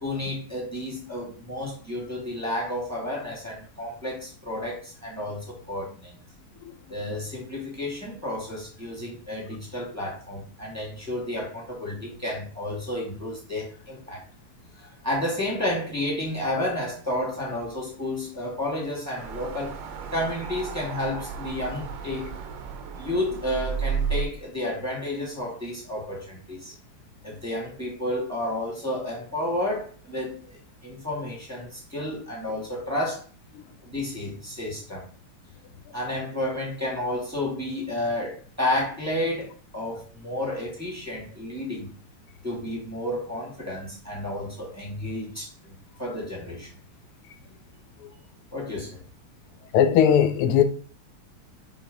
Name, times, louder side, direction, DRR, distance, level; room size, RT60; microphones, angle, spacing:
voice 1, 0.0-6.1 6.9-14.2 14.8-19.8 20.1-22.4 23.0-26.7 27.2-33.2 33.9-35.1 35.9-41.9 42.4-46.7 48.5-49.0, left 1 dB, 5° right, 2.1 m, -31 dB
sound 1, 19.2-24.2, right 7 dB, 65° right, 1.4 m, -33 dB
voice 2, 49.7-50.6, left 9 dB, 90° left, 1.6 m, -18 dB
5.2 x 5.2 x 3.8 m
omnidirectional pair, 2.4 m